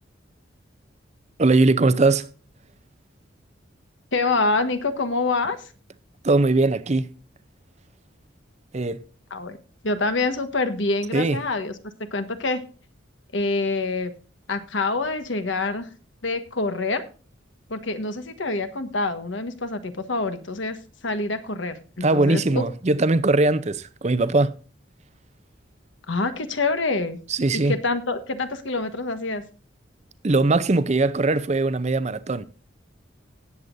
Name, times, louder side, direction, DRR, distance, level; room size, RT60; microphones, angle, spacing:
voice 1, 1.4-2.3 6.2-7.1 8.7-9.1 11.1-11.4 22.0-24.5 27.3-27.7 30.2-32.5, right 2 dB, 35° right, 0.6 m, -20 dB
voice 2, 4.1-5.6 9.3-9.6 9.8-11.7 12.0-12.6 13.3-14.1 14.5-15.9 16.2-17.0 17.7-22.6 26.1-27.2 27.5-29.4, left 3 dB, 75° left, 1.4 m, -26 dB
18.0 x 8.2 x 2.6 m
head